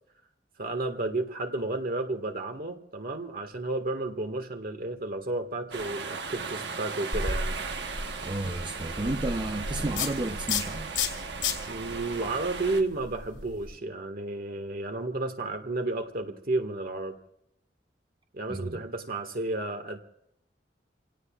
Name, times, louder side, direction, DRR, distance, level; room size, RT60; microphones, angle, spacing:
voice 1, 0.6-7.6 11.7-17.2 18.3-20.0, right 2 dB, 55° right, 6 dB, 1.7 m, -32 dB
sound 1, 5.7-12.8, right 4 dB, 70° right, 1.2 m, -37 dB
sound 2, 7.1-13.7, left 4 dB, 80° left, 2.8 m, -34 dB
voice 2, 8.2-10.9 18.5-18.8, right 2 dB, 25° right, 6 dB, 0.6 m, -32 dB
28.5 x 17.5 x 2.4 m, 0.76 s
head